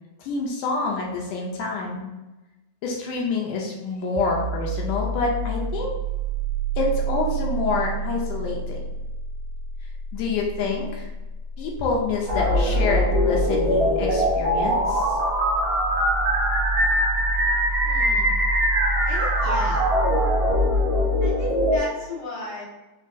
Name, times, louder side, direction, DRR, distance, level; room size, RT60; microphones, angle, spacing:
voice 1, 0.2-2.1 2.8-5.9 6.8-8.8 10.1-11.1 11.6-15.2, left 4 dB, 80° left, -1 dB, 2.0 m, -27 dB
sound 1, 4.2-15.6, right 4 dB, 90° right, 2.2 m, -31 dB
sound 2, 12.3-21.8, equal, 65° right, 1.1 m, -21 dB
voice 2, 17.8-18.3 19.0-19.9 21.2-22.6, left 1 dB, 60° left, -6 dB, 2.6 m, -35 dB
5.3 x 2.3 x 2.5 m, 1.1 s
omnidirectional pair, 3.9 m